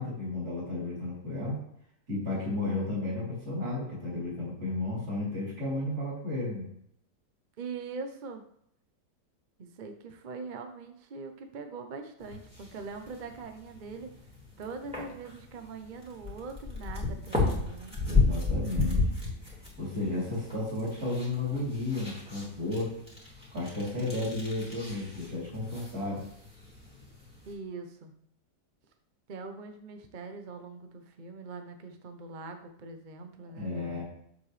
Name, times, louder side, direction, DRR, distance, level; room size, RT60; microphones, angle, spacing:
voice 1, 0.0-1.6 2.1-6.7 18.0-19.0 19.8-23.0 23.5-26.2 33.5-34.0, left 2 dB, 65° right, -6 dB, 4.2 m, -33 dB
voice 2, 7.6-8.4 9.6-14.1 14.6-18.0 27.5-28.1 29.3-34.0, right 4 dB, 50° right, 6 dB, 0.6 m, -42 dB
sound 1, 12.2-27.5, left 3 dB, 5° right, 2.4 m, -34 dB
7.4 x 6.7 x 3.2 m, 0.71 s
omnidirectional pair, 1.8 m